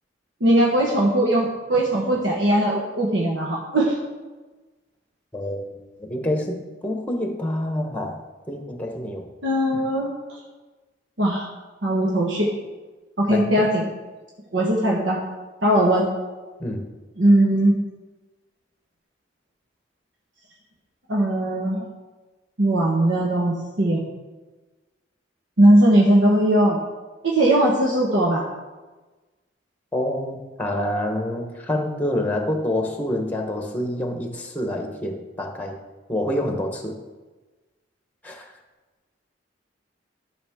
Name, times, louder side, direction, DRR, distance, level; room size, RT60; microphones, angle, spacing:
voice 1, 0.4-4.0 9.4-10.1 11.2-11.5 11.8-12.5 13.2-13.8 14.5-15.2 15.6-16.0 17.2-17.7 21.1-21.9 22.6-24.0 25.6-26.8 27.2-28.4, right 1 dB, 80° right, -2 dB, 1.3 m, -19 dB
voice 2, 5.3-8.2 8.5-9.3 9.7-9.8 13.3-13.7 16.6-16.8 29.9-35.8 36.1-36.9 38.2-38.5, left 1 dB, 10° left, 3 dB, 1.1 m, -27 dB
12.0 x 6.1 x 3.6 m, 1.2 s
head